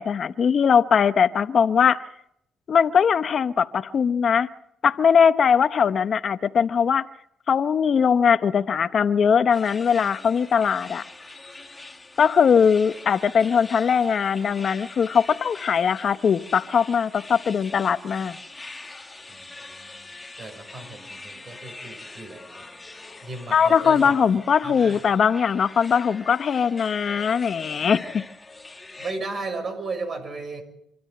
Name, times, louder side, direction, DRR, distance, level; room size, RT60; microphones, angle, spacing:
voice 1, 0.0-2.0 2.7-4.5 4.8-7.0 7.5-11.0 12.2-18.4 23.5-28.2, left 7 dB, 55° left, 11 dB, 0.8 m, -20 dB
sound 1, 9.5-29.1, left 2 dB, 15° left, 1.7 m, -43 dB
voice 2, 19.3-20.1 20.4-22.6 23.2-24.2 24.6-25.0 29.0-30.6, right 3 dB, 45° right, 5 dB, 6.4 m, -35 dB
26.0 x 13.0 x 7.8 m, 0.76 s
cardioid pair, 90°, 0 cm